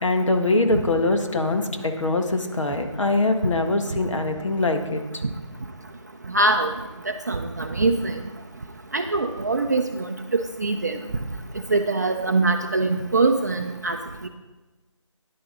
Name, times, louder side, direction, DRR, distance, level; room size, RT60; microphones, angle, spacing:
voice 1, 0.0-5.0, left 2 dB, 70° left, 5 dB, 1.5 m, -23 dB
voice 2, 6.3-6.7 7.3-8.1 8.9-9.8 10.3-11.0 11.7-14.0 14.2-14.3, right 3 dB, 35° right, 4 dB, 0.5 m, -22 dB
10.0 x 9.2 x 3.9 m, 1.2 s
figure-of-eight pair, 165°, 17 cm